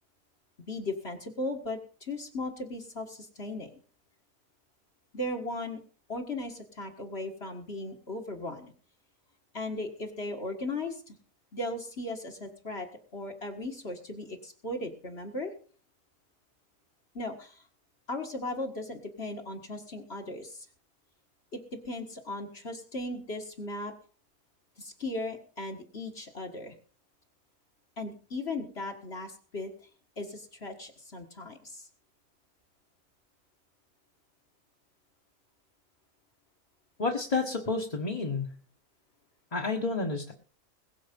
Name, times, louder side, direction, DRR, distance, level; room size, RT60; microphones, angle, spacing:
voice 1, 0.6-3.7 5.1-5.8 6.1-8.7 9.5-11.2 11.5-12.9 13.1-15.5 17.1-17.6 18.1-20.7 21.5-21.6 21.9-23.9 24.8-26.7 28.0-29.7 30.2-31.9, left 2 dB, 50° left, 2 dB, 2.0 m, -37 dB
voice 2, 37.0-38.5 39.5-40.3, left 3 dB, 30° left, 0 dB, 1.5 m, -30 dB
21.0 x 7.1 x 5.3 m, 0.43 s
omnidirectional pair, 1.4 m